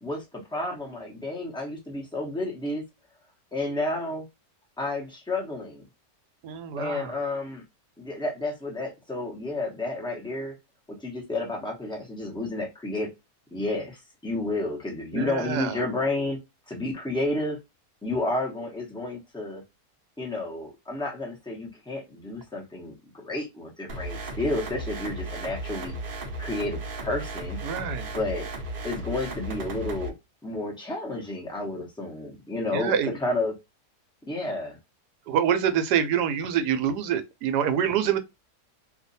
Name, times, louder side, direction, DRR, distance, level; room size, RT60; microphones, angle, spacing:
voice 1, 0.0-2.8 3.5-4.2 4.8-5.8 6.8-7.6 8.0-10.5 10.9-13.1 13.5-16.4 16.7-17.6 18.0-19.6 20.2-25.9 26.4-28.5 28.8-30.1 30.4-33.5 34.2-34.8, left 2 dB, 5° left, 0.6 m, -31 dB
voice 2, 6.4-7.1 15.1-15.8 27.6-28.1 32.7-33.1 35.3-38.2, right 8 dB, 80° right, 1.2 m, -26 dB
sound 1, 23.9-30.1, right 1 dB, 45° right, 0.7 m, -35 dB
2.7 x 2.4 x 4.0 m
omnidirectional pair, 1.7 m